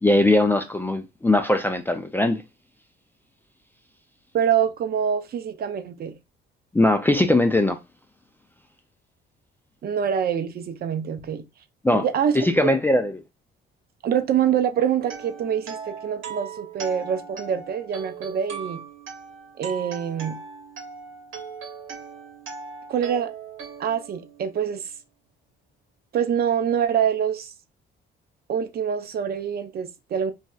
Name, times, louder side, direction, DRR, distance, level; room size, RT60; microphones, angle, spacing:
voice 1, 0.0-2.4 6.7-7.8 11.8-12.0 12.4-13.1, left 1 dB, 10° left, 0.3 m, -20 dB
voice 2, 4.3-6.1 9.8-11.5 11.9-12.7 14.0-18.8 19.6-20.4 22.9-23.3 23.8-24.9 26.1-27.5 28.5-30.3, right 8 dB, 50° right, 0.5 m, -25 dB
sound 1, 15.0-24.9, right 6 dB, 75° right, 1.0 m, -39 dB
3.1 x 2.7 x 2.3 m
cardioid pair, 105°, 21 cm